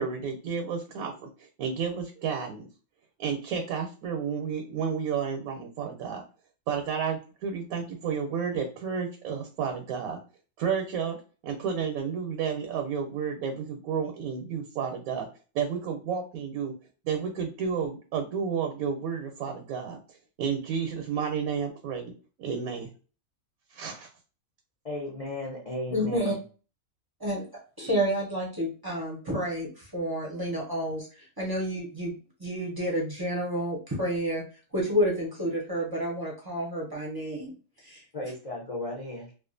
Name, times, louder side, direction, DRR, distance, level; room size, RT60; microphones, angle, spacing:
voice 1, 0.0-2.7 3.2-6.2 6.7-10.2 10.6-11.2 11.4-15.3 15.5-16.7 17.0-20.0 20.4-22.1 22.4-22.9 23.7-24.1, right 6 dB, 80° right, 1.0 m, -31 dB
voice 2, 24.8-26.4 38.1-39.3, left 1 dB, 55° left, 0.4 m, -35 dB
voice 3, 25.9-26.3 27.2-27.4 27.8-32.1 32.4-34.4 34.7-37.5 37.8-38.0, equal, 25° right, 0.5 m, -30 dB
2.4 x 2.3 x 2.5 m
omnidirectional pair, 1.5 m